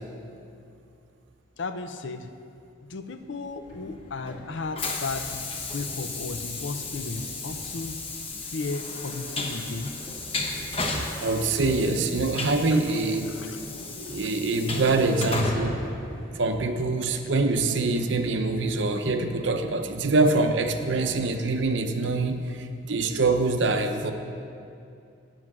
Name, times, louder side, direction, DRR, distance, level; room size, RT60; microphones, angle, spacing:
voice 1, 1.6-2.3 2.8-5.3 5.7-8.0 8.5-10.0 12.7-12.8 13.3-13.6, left 3 dB, 65° left, 9 dB, 0.5 m, -34 dB
Train, 3.6-16.8, left 3 dB, 30° left, 0.8 m, -35 dB
Hammer, 3.7-4.0 4.3-7.8 9.6-16.5 17.1-19.0, equal, 80° left, 2.4 m, -46 dB
voice 2, 11.2-13.3 14.0-15.8 16.3-24.1, right 3 dB, 65° right, 7 dB, 0.6 m, -24 dB
9.0 x 7.7 x 6.1 m, 2.5 s
head